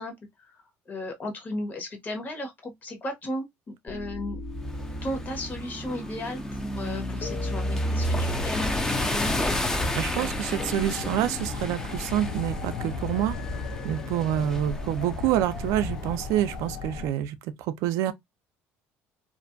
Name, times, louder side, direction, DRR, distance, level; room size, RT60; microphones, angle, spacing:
voice 1, 0.0-4.4 5.0-9.6, left 1 dB, 35° left, 1.1 m, -35 dB
sound 1, 3.9-6.8 7.2-9.0 9.3-9.4 9.7-9.9 10.2-10.3 10.6-12.3 13.1-14.7 15.4-16.3, left 3 dB, 50° left, 1.4 m, -43 dB
sound 2, 4.5-16.7, left 1 dB, 10° left, 0.4 m, -32 dB
sound 3, 8.0-17.1, left 4 dB, 85° left, 0.5 m, -36 dB
voice 2, 9.9-13.3 13.8-18.1, right 12 dB, 75° right, 0.4 m, -27 dB
2.5 x 2.1 x 2.5 m
supercardioid pair, 100°, 6 cm